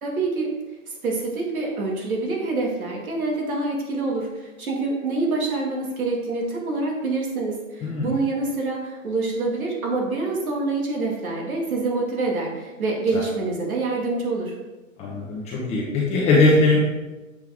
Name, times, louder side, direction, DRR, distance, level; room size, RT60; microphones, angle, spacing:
voice 1, 0.0-0.5 1.0-14.5, right 3 dB, 85° right, -1 dB, 2.3 m, -26 dB
voice 2, 15.0-16.8, left 3 dB, 15° left, -5 dB, 0.9 m, -20 dB
7.8 x 4.6 x 3.6 m, 1.1 s
hypercardioid pair, 145°, 42 cm